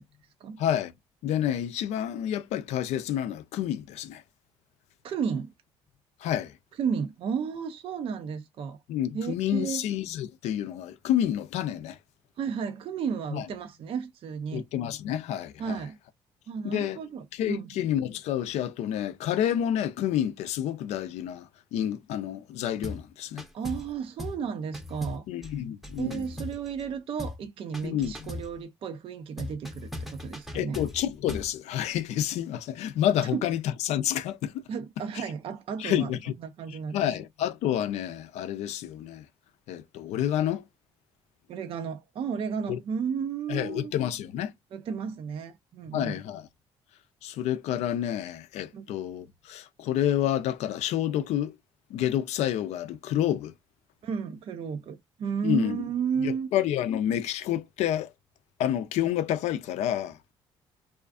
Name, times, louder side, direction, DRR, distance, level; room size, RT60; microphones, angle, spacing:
voice 1, 0.6-0.9 1.2-4.2 6.2-6.5 8.9-12.0 13.3-13.5 14.5-15.8 16.6-17.0 17.3-23.4 25.3-26.2 27.8-28.3 30.5-34.5 35.8-36.3 36.9-39.2 39.7-40.6 42.7-42.8 43.5-44.5 45.9-46.5 47.2-51.5 51.9-53.5 55.4-55.8 56.2-58.1 58.6-60.2, left 11 dB, 75° left, 0.4 m, -29 dB
voice 2, 5.0-5.5 6.8-8.8 9.1-9.8 12.4-14.6 15.6-16.0 16.5-17.7 23.5-25.3 26.0-30.8 33.3-33.4 34.7-36.1 36.4-37.2 41.5-43.9 44.7-46.2 48.7-48.8 54.0-56.5, right 6 dB, 55° right, 0.4 m, -33 dB
sound 1, 22.8-23.1 23.4-23.9 24.2-24.4 24.7-26.9 27.2-27.4 27.7-28.5 29.4-31.5, left 1 dB, ahead, 0.7 m, -38 dB
2.4 x 2.4 x 2.3 m
supercardioid pair, 80°, 12 cm